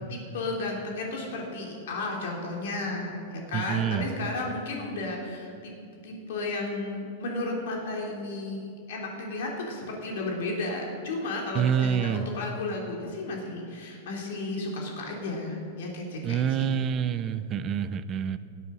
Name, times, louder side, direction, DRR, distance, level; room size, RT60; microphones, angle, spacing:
voice 1, 0.1-5.7 6.0-16.7, left 2 dB, 65° left, -1 dB, 3.1 m, -33 dB
voice 2, 3.5-4.1 11.5-12.3 16.2-18.4, right 8 dB, 20° right, 13 dB, 0.5 m, -27 dB
19.0 x 8.3 x 6.3 m, 2.4 s
supercardioid pair, 170°, 0 cm